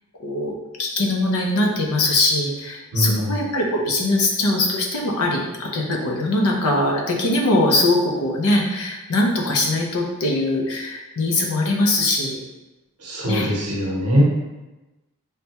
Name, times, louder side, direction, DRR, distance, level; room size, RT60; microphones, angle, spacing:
voice 1, 0.2-12.4 13.2-13.5 14.2-14.3, left 2 dB, 80° left, 0 dB, 0.6 m, -21 dB
voice 2, 2.9-3.4 13.0-14.2, equal, 85° right, -2 dB, 0.8 m, -21 dB
3.2 x 2.1 x 2.8 m, 1.1 s
head